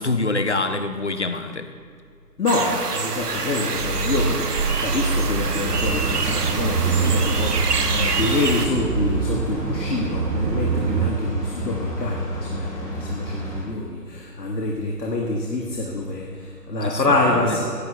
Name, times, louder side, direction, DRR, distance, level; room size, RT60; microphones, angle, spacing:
voice 1, 0.0-1.7 16.8-17.0 17.5-17.6, left 2 dB, 45° left, 9 dB, 0.5 m, -25 dB
voice 2, 2.4-4.5 4.8-17.7, left 2 dB, 80° left, -1 dB, 1.5 m, -26 dB
sound 1, 2.5-8.7, right 4 dB, 65° right, 1.1 m, -27 dB
sound 2, 3.8-11.1, right 5 dB, 85° right, 0.8 m, -26 dB
sound 3, 5.6-13.6, equal, 20° left, 1.9 m, -29 dB
17.0 x 10.5 x 2.3 m, 2.2 s
figure-of-eight pair, 170°, 49 cm